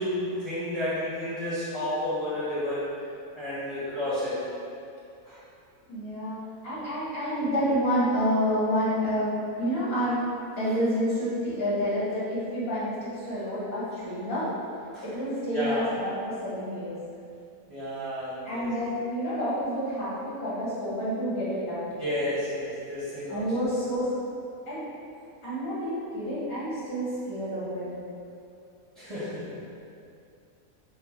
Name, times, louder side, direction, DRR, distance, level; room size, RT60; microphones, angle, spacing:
voice 1, 0.0-2.9 3.3-4.4 5.2-5.4 14.9-15.0 15.5-15.9 17.7-18.7 22.0-23.5 29.0-29.5, left 1 dB, 25° right, -11 dB, 0.9 m, -31 dB
voice 2, 5.9-9.3 9.6-10.2 10.6-14.5 15.0-17.0 18.5-21.9 23.3-24.1 24.7-24.8 25.4-27.9, equal, 75° left, -10 dB, 2.0 m, -29 dB
4.3 x 2.2 x 4.4 m, 2.5 s
omnidirectional pair, 1.5 m